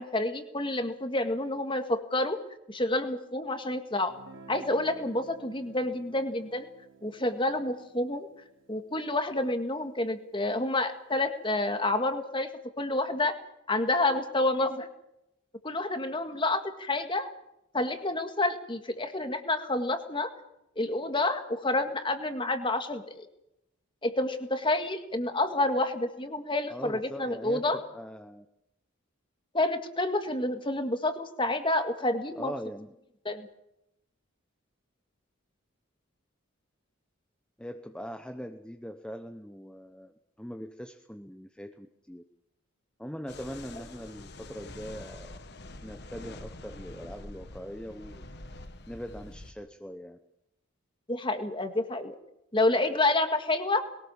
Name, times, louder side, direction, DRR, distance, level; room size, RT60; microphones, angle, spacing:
voice 1, 0.0-2.4 2.7-4.1 4.5-6.7 7.0-8.3 8.7-12.5 12.8-13.3 13.7-14.9 15.6-17.3 17.7-20.3 20.8-23.3 24.0-27.8 29.5-32.5 33.3-33.5 51.1-52.2 52.5-53.8, left 2 dB, 25° left, 8 dB, 1.9 m, -29 dB
Guitar, 4.1-9.8, right 4 dB, 60° right, 3.9 m, -53 dB
voice 2, 26.7-28.5 32.4-32.9 37.6-42.2 43.0-45.4 45.8-48.2 48.9-50.2, equal, 5° left, 6 dB, 0.9 m, -41 dB
sound 1, 43.3-49.5, left 2 dB, 50° left, 1.6 m, -46 dB
22.0 x 18.5 x 7.2 m, 0.83 s
head